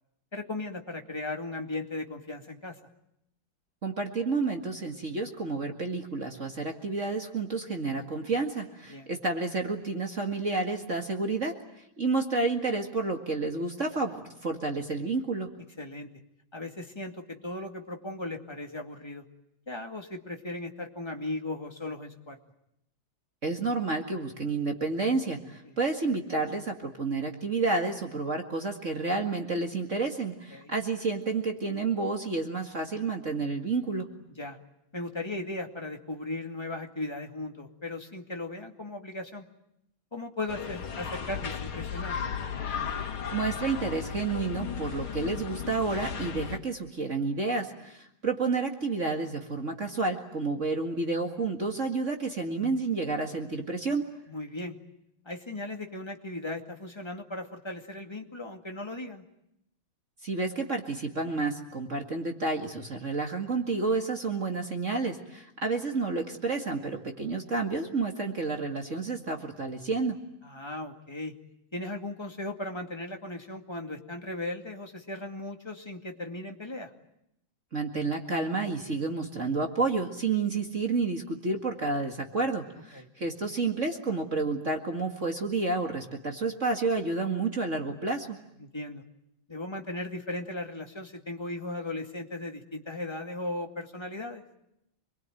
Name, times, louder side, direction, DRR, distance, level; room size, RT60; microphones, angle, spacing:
voice 1, 0.3-2.8 8.9-9.1 15.8-16.1 16.5-19.2 19.7-22.4 25.7-25.8 30.5-30.7 34.4-34.6 34.9-39.5 40.1-42.3 54.3-54.8 55.2-59.2 70.4-71.3 71.7-76.9 82.9-83.1 88.6-89.0 89.5-94.4, left 2 dB, 15° left, 3 dB, 2.2 m, -37 dB
voice 2, 3.8-15.5 23.4-34.1 43.3-54.1 60.2-70.2 77.7-88.4, right 3 dB, 35° right, 3 dB, 2.2 m, -30 dB
sound 1, 40.5-46.6, left 7 dB, 80° left, 2.6 m, -35 dB
27.5 x 22.0 x 9.2 m, 0.80 s
omnidirectional pair, 2.3 m